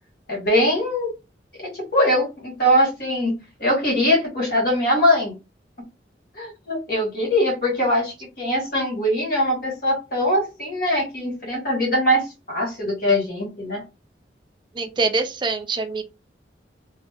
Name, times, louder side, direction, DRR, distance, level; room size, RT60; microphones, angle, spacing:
voice 1, 0.3-1.1 1.7-3.3 3.6-5.3 6.3-13.8, equal, 55° left, 1.6 m, -22 dB
voice 2, 14.7-16.0, right 3 dB, 25° right, 0.4 m, -24 dB
2.7 x 2.1 x 3.4 m
head